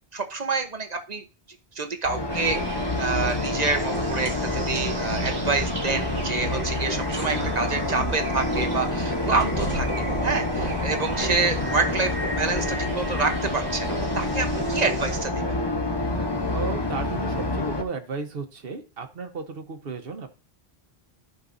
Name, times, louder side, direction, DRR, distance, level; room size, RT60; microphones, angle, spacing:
voice 1, 0.1-1.2 1.8-2.6 3.0-15.4, right 4 dB, 40° right, 5 dB, 1.0 m, -27 dB
sound 1, 2.0-17.8, left 2 dB, 25° left, 1.0 m, -28 dB
sound 2, 2.3-15.2, right 2 dB, 90° right, 1.7 m, -34 dB
voice 2, 16.5-20.3, right 5 dB, 65° right, 6 dB, 1.3 m, -34 dB
14.0 x 5.3 x 2.6 m, 0.31 s
omnidirectional pair, 1.1 m